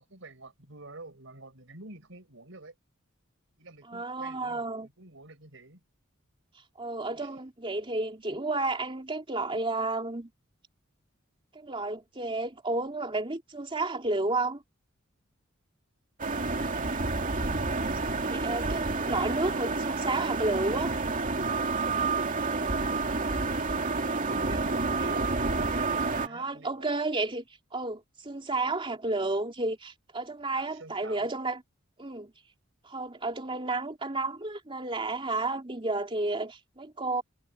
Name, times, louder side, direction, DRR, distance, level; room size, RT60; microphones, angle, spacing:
voice 1, 0.0-2.7 3.6-5.8 7.1-7.4 16.8-17.2 23.7-25.4 25.8-26.9 30.5-31.3, right 2 dB, 70° right, 6.5 m, -49 dB
voice 2, 3.9-4.9 6.8-10.3 11.5-14.6 18.3-20.9 26.2-27.4 27.7-31.6 32.0-32.3 32.8-37.2, right 2 dB, 25° right, 3.1 m, -31 dB
sound 1, 16.2-26.3, right 3 dB, 40° right, 2.6 m, -29 dB
head